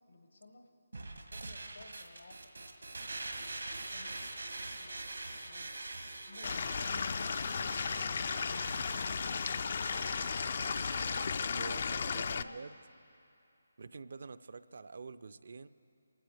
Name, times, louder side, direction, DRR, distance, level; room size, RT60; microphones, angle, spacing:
voice 1, 0.1-0.7 1.0-2.8 3.6-4.2 4.8-5.0 5.4-5.7 6.3-6.5 7.0-8.2 12.0-12.6, left 2 dB, 80° left, 5 dB, 1.6 m, -57 dB
sound 1, 0.9-11.2, right 2 dB, 85° right, 1.6 m, -44 dB
Stream / Liquid, 6.4-12.4, left 5 dB, 50° left, 0.3 m, -35 dB
voice 2, 11.5-12.7 13.8-15.7, right 4 dB, 60° right, 14 dB, 0.4 m, -46 dB
25.0 x 15.0 x 3.4 m, 2.7 s
figure-of-eight pair, 160°, 0 cm